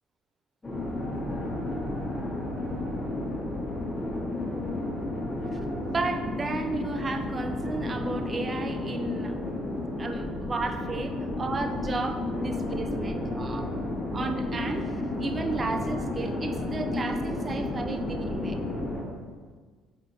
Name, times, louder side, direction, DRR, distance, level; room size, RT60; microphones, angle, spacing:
sound 1, 0.6-19.0, left 2 dB, 20° left, 1.4 m, -32 dB
voice 1, 5.7-9.4 10.0-13.6 14.1-14.8 15.2-18.6, right 3 dB, 35° right, 6 dB, 0.4 m, -33 dB
4.3 x 4.3 x 2.7 m, 1.5 s
hypercardioid pair, 60°, 0 cm